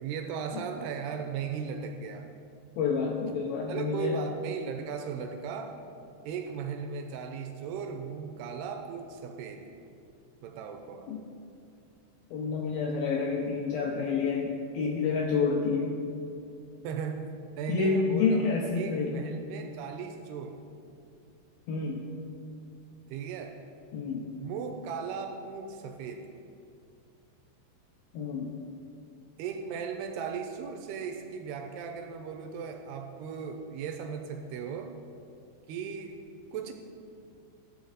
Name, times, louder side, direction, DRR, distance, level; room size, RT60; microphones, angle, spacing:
voice 1, 0.0-2.3 3.7-5.8 6.3-9.7 10.4-11.1 16.8-20.6 23.1-23.6 24.4-26.3 29.4-35.0 35.7-36.2 36.5-36.7, right 6 dB, 85° right, 5 dB, 2.3 m, -37 dB
voice 2, 2.8-4.2 11.1-11.2 12.3-16.0 17.7-19.2 21.7-22.0 23.9-24.3 28.1-28.5, left 5 dB, 85° left, 0 dB, 2.1 m, -29 dB
13.5 x 7.1 x 3.9 m, 2.5 s
omnidirectional pair, 5.1 m